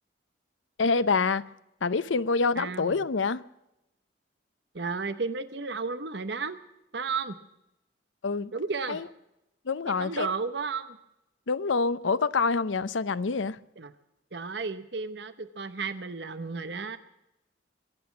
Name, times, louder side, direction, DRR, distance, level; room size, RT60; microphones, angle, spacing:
voice 1, 0.8-1.4 1.8-3.4 8.2-8.5 8.9-9.1 9.7-10.3 11.5-13.6, left 4 dB, 90° left, 0.7 m, -26 dB
voice 2, 2.6-3.0 4.7-6.6 6.9-7.4 8.5-9.0 9.9-11.0 13.8-13.9 14.3-17.0, right 4 dB, 65° right, 0.9 m, -33 dB
23.5 x 8.6 x 7.1 m
head